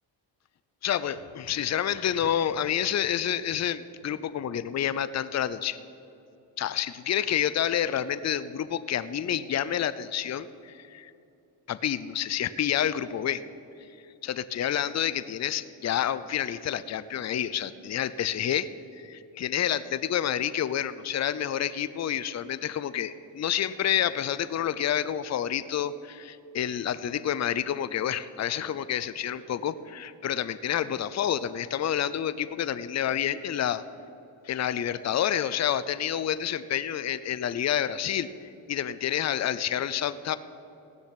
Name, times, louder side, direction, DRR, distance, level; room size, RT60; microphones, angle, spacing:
voice 1, 0.8-5.8 6.6-11.1 11.7-13.4 14.2-18.7 19.0-33.8 34.5-38.3 38.7-40.4, left 10 dB, 40° left, 14 dB, 0.6 m, -29 dB
16.5 x 6.4 x 9.9 m, 2.7 s
supercardioid pair, 65°, 41 cm